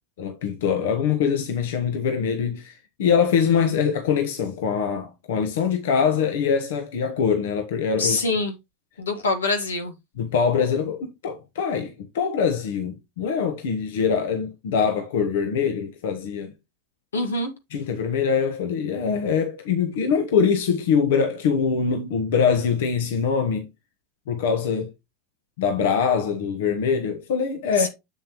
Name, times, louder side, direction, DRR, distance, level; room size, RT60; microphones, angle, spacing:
voice 1, 0.2-8.2 10.2-16.5 17.7-23.7 24.3-24.9 25.6-27.9, left 6 dB, 70° left, 1.3 m, -23 dB
voice 2, 8.0-8.5 9.0-9.9 17.1-17.5 27.8-27.9, left 3 dB, 85° left, 1.7 m, -24 dB
7.6 x 7.1 x 3.0 m
hypercardioid pair, 90°, 0 cm